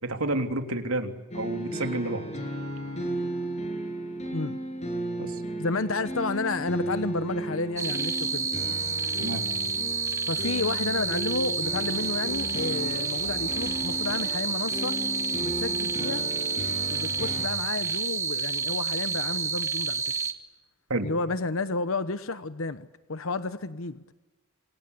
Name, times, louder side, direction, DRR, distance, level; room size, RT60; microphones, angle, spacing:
voice 1, 0.0-2.2 5.2-5.4 9.2-9.4 20.9-21.1, right 2 dB, 75° right, 6 dB, 3.2 m, -30 dB
sound 1, 1.3-17.5, right 1 dB, 30° left, 7.0 m, -35 dB
voice 2, 5.6-8.5 10.3-15.0 15.4-16.2 16.9-20.0 21.0-24.0, left 3 dB, 65° left, 12 dB, 1.0 m, -31 dB
sound 2, 7.8-20.3, right 5 dB, 15° right, 1.9 m, -29 dB
27.5 x 25.5 x 8.4 m, 1.1 s
head